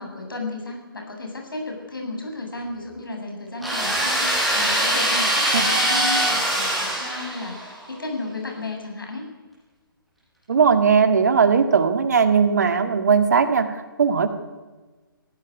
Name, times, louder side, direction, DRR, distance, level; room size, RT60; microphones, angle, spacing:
voice 1, 0.0-9.3, left 2 dB, 70° left, 2 dB, 7.5 m, -33 dB
sound 1, 3.6-7.7, right 1 dB, ahead, 6.0 m, -22 dB
voice 2, 10.5-14.3, right 6 dB, 50° right, 8 dB, 2.2 m, -18 dB
19.5 x 16.0 x 9.7 m, 1.3 s
figure-of-eight pair, 140°, 12 cm